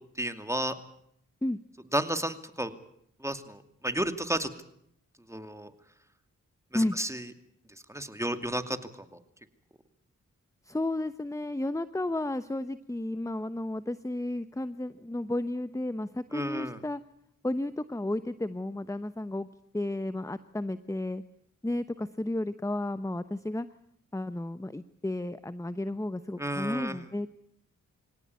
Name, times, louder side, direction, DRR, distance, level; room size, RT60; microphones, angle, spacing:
voice 1, 0.2-0.8 1.9-2.7 3.2-4.5 5.3-5.7 6.7-7.3 7.9-9.2 16.3-16.8 26.4-27.0, right 1 dB, 10° right, 8 dB, 2.5 m, -32 dB
voice 2, 10.6-17.0 17.4-19.5 19.7-21.2 21.6-23.7 24.1-27.3, left 1 dB, 10° left, 13 dB, 1.0 m, -32 dB
25.0 x 17.5 x 9.6 m, 0.72 s
cardioid pair, 50°, 32 cm